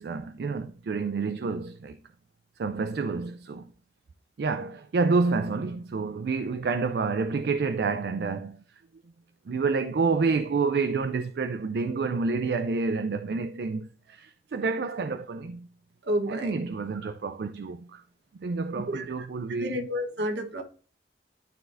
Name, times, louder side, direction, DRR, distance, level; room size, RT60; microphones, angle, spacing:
voice 1, 0.0-2.0 2.6-3.7 4.4-8.6 9.5-15.7 16.3-18.0 18.4-19.9, right 4 dB, 60° right, 0.4 m, -28 dB
voice 2, 16.1-16.5 18.9-19.0 19.6-20.6, equal, 80° right, 1.2 m, -29 dB
12.0 x 4.0 x 2.5 m
head